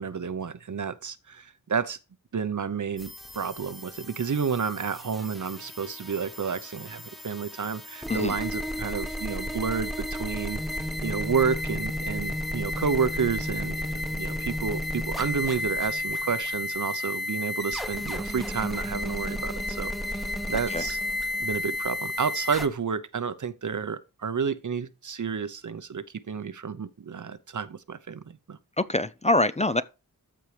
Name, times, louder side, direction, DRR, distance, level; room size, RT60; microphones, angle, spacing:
voice 1, 0.0-2.0 2.3-10.6 11.0-21.0 21.4-28.6, right 6 dB, 60° right, 0.8 m, -30 dB
sound 1, 3.0-22.7, left 1 dB, ahead, 1.0 m, -32 dB
voice 2, 28.8-29.8, left 2 dB, 20° left, 0.5 m, -24 dB
13.5 x 4.5 x 3.3 m
wide cardioid pair, 55°, 35 cm